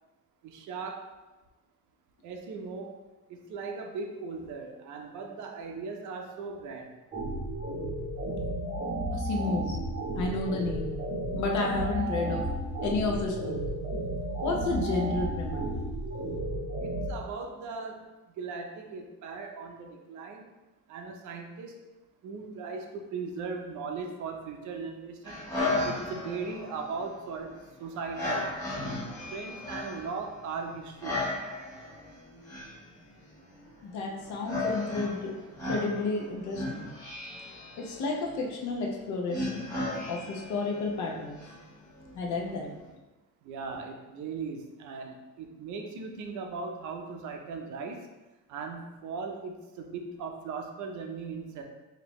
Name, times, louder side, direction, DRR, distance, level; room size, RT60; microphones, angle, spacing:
voice 1, 0.4-1.1 2.2-3.0 3.3-6.9 16.8-18.1 18.4-20.5 20.9-21.8 22.2-25.5 25.8-28.5 29.3-31.2 42.6-42.7 43.4-48.0 48.5-51.6, right 4 dB, 60° right, 3 dB, 0.6 m, -38 dB
sound 1, 7.1-17.1, right 1 dB, 20° right, 0.6 m, -33 dB
voice 2, 9.1-9.8 10.2-10.9 11.3-12.4 12.8-13.6 14.4-15.7 33.8-35.3 35.7-36.9 37.8-39.6 40.1-41.4 42.2-42.7, left 3 dB, 60° left, 1 dB, 0.8 m, -31 dB
sound 2, 25.2-42.9, left 2 dB, 10° left, 1.1 m, -36 dB
5.2 x 2.8 x 3.0 m, 1.1 s
cardioid pair, 175°, 33 cm